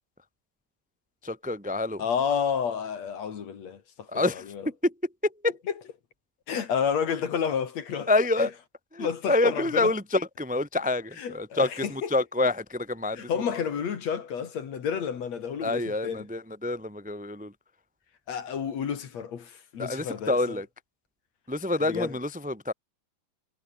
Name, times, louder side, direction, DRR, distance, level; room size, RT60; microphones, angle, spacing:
voice 1, 1.2-2.0 4.1-4.9 5.2-5.5 8.1-8.5 8.9-13.3 15.6-17.5 19.8-20.7 21.5-22.7, left 2 dB, 5° right, 1.3 m, -27 dB
voice 2, 2.0-4.6 6.5-8.1 8.4-8.5 9.0-9.9 11.2-12.1 13.1-16.2 18.3-20.6 21.9-22.1, left 7 dB, 60° left, 3.3 m, -30 dB
omnidirectional pair, 3.6 m